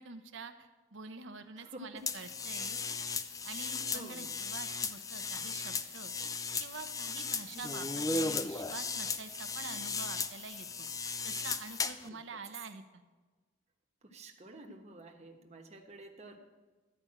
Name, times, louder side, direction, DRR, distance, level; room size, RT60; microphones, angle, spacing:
voice 1, 0.0-2.8 3.4-6.1 6.6-13.0, right 4 dB, 75° right, 8 dB, 0.9 m, -47 dB
voice 2, 1.6-2.0 2.7-3.1 3.9-4.3 7.5-7.6 12.0-12.2 14.0-16.4, right 1 dB, 35° right, 3 dB, 1.2 m, -50 dB
sound 1, 2.1-12.1, left 4 dB, 20° left, 0.4 m, -36 dB
12.5 x 5.2 x 8.7 m, 1.3 s
head